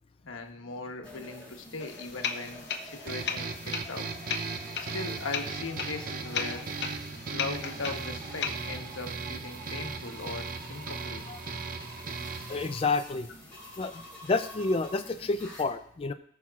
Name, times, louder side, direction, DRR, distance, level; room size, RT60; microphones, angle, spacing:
voice 1, 0.2-4.1 4.8-6.7 7.3-11.3, left 3 dB, 90° left, 4 dB, 1.1 m, -39 dB
sound 1, 1.0-15.6, left 1 dB, 5° left, 3.9 m, -48 dB
sound 2, 1.8-8.5, left 7 dB, 55° left, 0.8 m, -37 dB
sound 3, 3.1-12.7, right 5 dB, 45° right, 0.5 m, -38 dB
voice 2, 12.5-13.3 13.8-13.9 14.3-16.1, left 3 dB, 30° left, 8 dB, 0.3 m, -29 dB
17.5 x 6.0 x 2.4 m, 0.65 s
head